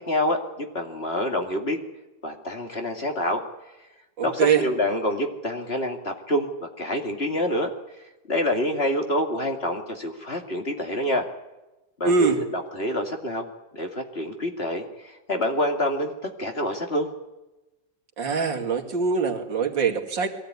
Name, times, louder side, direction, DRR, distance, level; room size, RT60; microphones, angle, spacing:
voice 1, 0.0-1.8 2.2-3.4 4.2-7.7 8.3-11.3 12.0-13.5 13.7-16.1 16.4-17.1, left 1 dB, 35° left, 3 dB, 2.6 m, -27 dB
voice 2, 4.2-4.6 12.0-12.4 18.2-20.3, right 5 dB, 80° right, 1 dB, 3.2 m, -23 dB
22.5 x 16.5 x 9.7 m, 1.0 s
omnidirectional pair, 2.0 m